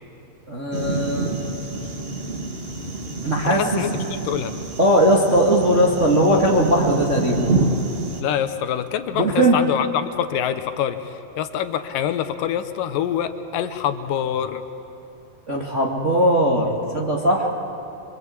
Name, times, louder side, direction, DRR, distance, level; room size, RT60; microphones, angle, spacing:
voice 1, 0.5-1.3 3.2-3.6 4.8-7.4 9.1-9.6 15.5-17.5, right 1 dB, 30° right, -3 dB, 1.4 m, -19 dB
sound 1, 0.7-8.2, right 3 dB, 90° right, 0.5 m, -27 dB
voice 2, 3.4-4.5 8.2-14.6, left 9 dB, 80° left, 8 dB, 2.4 m, -25 dB
25.0 x 24.0 x 8.3 m, 2.7 s
omnidirectional pair, 4.0 m